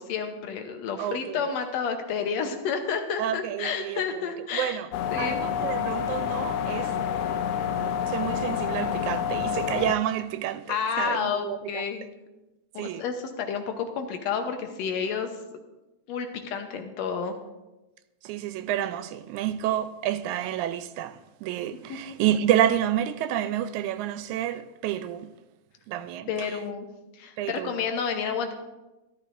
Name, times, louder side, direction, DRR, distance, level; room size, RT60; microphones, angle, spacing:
voice 1, 0.0-4.8 5.1-5.4 10.7-12.1 12.7-15.3 16.1-17.4 21.9-22.1 26.3-26.9 27.1-28.5, left 6 dB, 70° left, 2.0 m, -30 dB
voice 2, 1.0-1.5 3.2-4.9 5.2-6.9 7.8-11.8 12.8-13.0 18.2-25.4 25.9-26.6 27.4-27.8, right 11 dB, 85° right, 1.9 m, -29 dB
sound 1, 4.9-10.0, left 8 dB, 90° left, 1.3 m, -28 dB
12.5 x 12.5 x 2.6 m
omnidirectional pair, 3.4 m